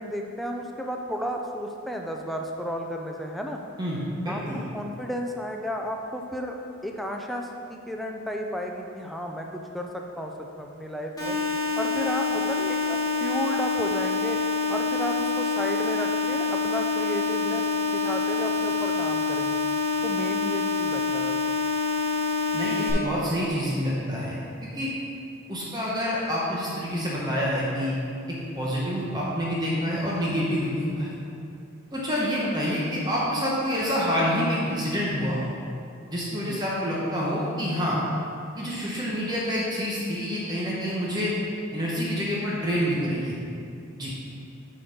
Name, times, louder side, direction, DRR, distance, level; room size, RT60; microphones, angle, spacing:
voice 1, 0.0-3.6 4.3-4.4 4.7-6.6 6.8-11.4 11.8-14.4 14.7-17.7 17.9-19.6 20.0-21.6 36.5-36.7, equal, ahead, 1 dB, 0.4 m, -33 dB
voice 2, 3.8-4.6 22.5-24.4 24.7-24.9 25.5-28.0 28.3-31.1 31.9-35.5 36.1-38.0 38.6-41.3 41.7-43.4 44.0-44.1, equal, 20° right, -6 dB, 0.9 m, -27 dB
sound 1, 11.2-22.9, left 4 dB, 15° left, 1.4 m, -26 dB
7.9 x 3.9 x 5.2 m, 2.5 s
head